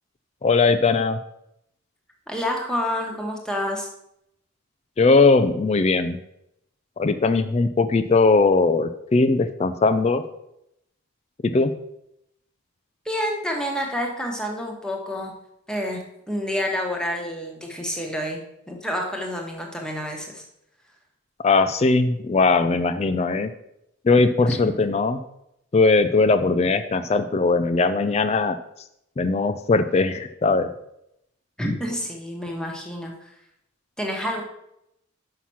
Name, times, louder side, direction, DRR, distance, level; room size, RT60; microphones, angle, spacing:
voice 1, 0.4-1.2 5.0-6.2 7.0-10.2 11.4-11.7 21.4-23.5 24.0-25.2 25.7-28.6 29.2-30.7, left 3 dB, 30° left, 10 dB, 0.3 m, -19 dB
voice 2, 2.3-3.9 13.0-15.3 15.7-18.4 18.7-20.4 24.5-24.7 31.6-33.1 34.0-34.4, equal, 5° left, 1 dB, 1.1 m, -28 dB
5.8 x 5.7 x 6.1 m, 0.80 s
head